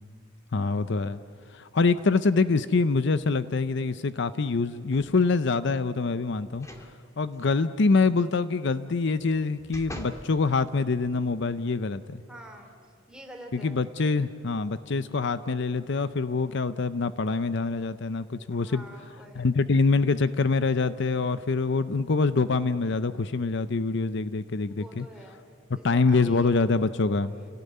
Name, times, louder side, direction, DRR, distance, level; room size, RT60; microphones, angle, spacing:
voice 1, 0.5-1.2 1.5-6.7 7.2-12.2 13.5-18.8 19.4-25.1 25.8-27.3, left 4 dB, 60° left, 13 dB, 0.6 m, -25 dB
sound 1, 4.9-5.4 6.5-6.9 7.3-7.4 9.0-10.3 10.9-11.0, left 1 dB, 15° left, 2.3 m, -43 dB
voice 2, 7.4-7.8 12.3-12.7 13.1-13.8 14.3-14.4 18.5-19.6 24.7-25.4 25.7-26.6 27.2-27.3, right 1 dB, 5° right, 2 dB, 3.1 m, -47 dB
29.0 x 18.0 x 9.5 m, 2.3 s
head